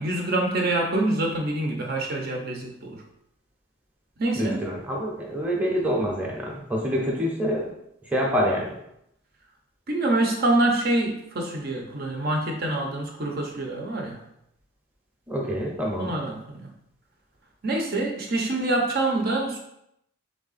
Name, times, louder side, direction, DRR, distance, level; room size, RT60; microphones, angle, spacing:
voice 1, 0.0-3.0 4.2-4.6 9.9-14.2 16.0-16.7 17.6-19.6, right 2 dB, 45° right, 1 dB, 0.7 m, -26 dB
voice 2, 4.4-7.6 8.1-8.7 15.3-16.1, equal, 5° right, -3 dB, 0.7 m, -26 dB
3.6 x 3.4 x 4.0 m, 0.79 s
head